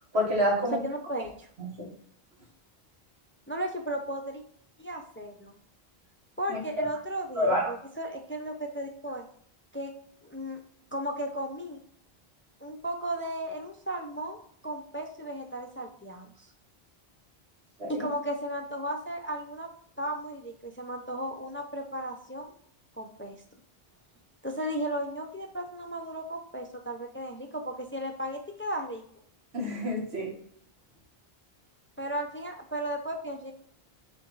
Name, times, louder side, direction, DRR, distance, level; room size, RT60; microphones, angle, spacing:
voice 1, 0.1-0.8 1.6-1.9 6.5-6.9 7.3-7.7 17.8-18.1 29.5-30.3, equal, 90° right, -2 dB, 2.0 m, -28 dB
voice 2, 0.8-1.5 3.5-4.4 4.8-5.5 6.4-9.3 9.7-9.9 10.2-10.6 10.9-11.8 12.6-16.5 17.9-19.7 20.0-22.5 23.0-23.4 24.4-29.0 32.0-33.5, right 1 dB, 15° left, 3 dB, 0.5 m, -35 dB
7.7 x 3.3 x 3.9 m, 0.63 s
omnidirectional pair, 1.0 m